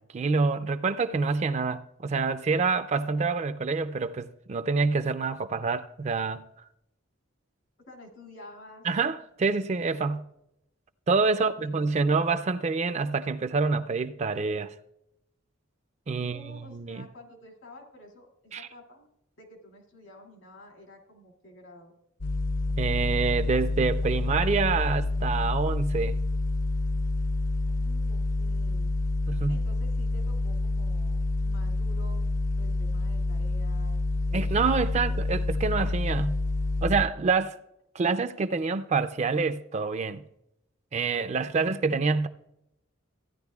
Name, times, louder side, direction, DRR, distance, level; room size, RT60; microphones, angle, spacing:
voice 1, 0.0-6.4 8.8-10.2 11.1-14.7 16.1-17.1 18.5-18.7 22.8-26.2 29.3-29.6 34.3-36.4 36.8-37.6 37.9-40.2 40.9-42.3, right 4 dB, 35° right, 0.4 m, -27 dB
voice 2, 7.9-8.9 11.2-12.1 16.1-19.1 19.4-21.9 27.7-29.0 29.5-32.2 32.6-34.0 34.3-35.1 41.1-41.5, left 1 dB, 85° left, 2.5 m, -50 dB
sound 1, 22.2-37.1, left 2 dB, 40° left, 0.5 m, -28 dB
15.0 x 10.0 x 2.3 m
head